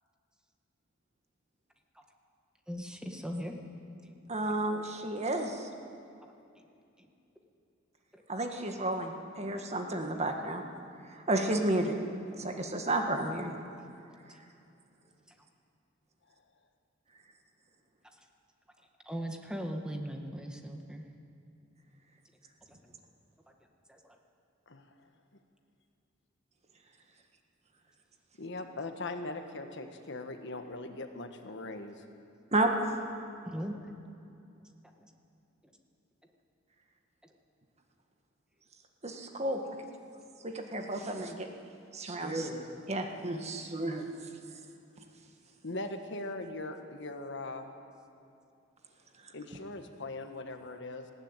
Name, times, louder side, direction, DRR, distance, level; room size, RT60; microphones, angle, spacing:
voice 1, 2.7-3.6 4.0-4.1 4.4-4.5 4.9-5.0 6.6-6.7 7.0-7.1 8.1-8.2 8.7-9.1 19.0-21.0 23.9-24.0 33.4-33.7, equal, 5° right, 3 dB, 1.7 m, -39 dB
voice 2, 4.3-5.7 8.3-10.6 11.3-12.0 12.3-13.5 32.5-33.0 39.0-39.6 40.4-41.5 41.9-44.1, right 1 dB, 35° right, 4 dB, 1.7 m, -32 dB
voice 3, 24.7-25.1 28.4-32.0 45.6-47.7 49.3-51.1, left 2 dB, 65° left, 6 dB, 1.5 m, -40 dB
19.5 x 16.5 x 9.1 m, 2.6 s
head